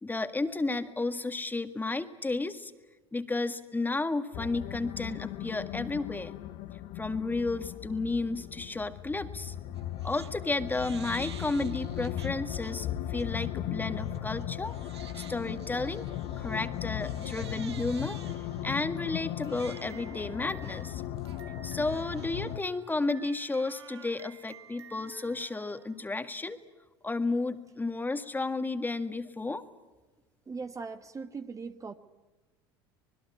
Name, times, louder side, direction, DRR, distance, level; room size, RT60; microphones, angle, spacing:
voice 1, 0.0-2.7 3.1-6.3 7.0-9.5 10.0-14.7 15.2-16.1 16.4-18.2 18.6-21.0 21.6-26.6 27.0-29.6, left 3 dB, 15° left, 9 dB, 1.8 m, -32 dB
sound 1, 4.3-22.6, left 12 dB, 60° left, 1.3 m, -37 dB
Crying sobbing, 9.7-10.3 10.7-12.7 13.2-13.5 14.0-26.0, right 8 dB, 90° right, 1.3 m, -51 dB
voice 2, 30.5-31.9, right 4 dB, 25° right, 8 dB, 1.3 m, -39 dB
26.0 x 20.5 x 8.4 m, 1.2 s
hypercardioid pair, 80°, 13 cm